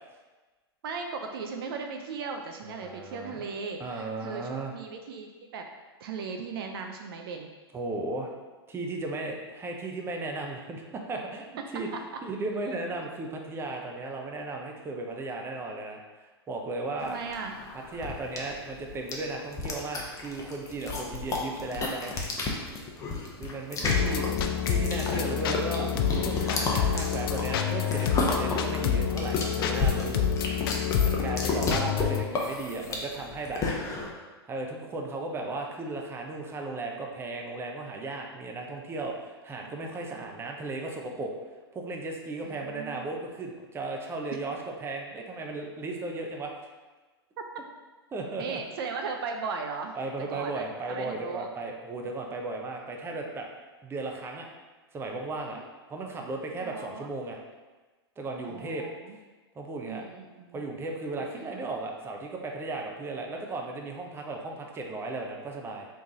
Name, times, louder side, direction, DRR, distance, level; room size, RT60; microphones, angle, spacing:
voice 1, 0.8-5.7 6.0-7.5 11.6-11.7 17.0-17.6 23.8-24.3 31.2-31.6 39.6-39.8 40.1-40.5 42.4-43.0 47.4-47.5 48.4-50.0 50.3-51.5 55.5-55.7 56.6-57.1 58.4-59.2 59.9-60.6 61.4-61.7, right 5 dB, 60° right, 4 dB, 0.5 m, -38 dB
voice 2, 2.6-3.4 3.8-4.7 7.7-8.3 8.7-11.5 11.7-11.9 12.2-16.0 16.5-17.2 17.9-22.1 23.4-24.3 24.6-25.9 26.2-30.2 31.0-33.6 34.5-41.3 41.7-46.5 48.1-48.6 50.0-53.5 53.8-54.5 54.9-55.6 55.9-57.4 58.2-58.9 59.6-60.1 60.5-65.9, right 2 dB, 15° right, 1 dB, 0.6 m, -35 dB
sound 1, 17.1-34.1, left 3 dB, 25° left, 0.8 m, -32 dB
sound 2, 23.9-32.2, left 8 dB, 60° left, 0.4 m, -28 dB
3.5 x 3.3 x 3.8 m, 1.3 s
hypercardioid pair, 100°, 14 cm